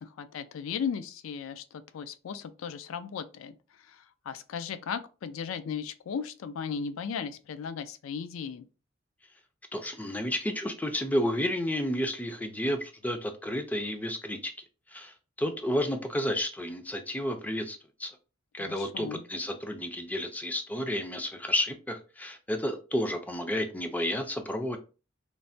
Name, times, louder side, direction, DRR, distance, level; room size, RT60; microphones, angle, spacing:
voice 1, 0.0-3.6 3.9-8.7 18.7-19.2, left 6 dB, 85° left, 0.3 m, -36 dB
voice 2, 9.7-14.5 14.9-18.1 18.5-24.8, equal, 10° left, 0.4 m, -31 dB
3.2 x 2.1 x 2.6 m
head